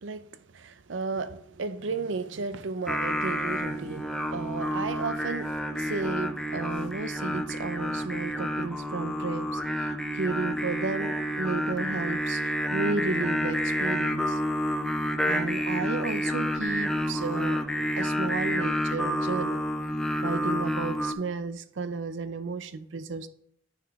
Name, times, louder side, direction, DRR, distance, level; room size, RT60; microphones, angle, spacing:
voice 1, 0.0-14.4 14.7-14.9 15.3-19.6 20.2-23.3, right 4 dB, 75° right, 0.6 m, -33 dB
Singing, 2.9-21.1, equal, 5° left, 0.4 m, -29 dB
9.6 x 4.9 x 3.4 m
head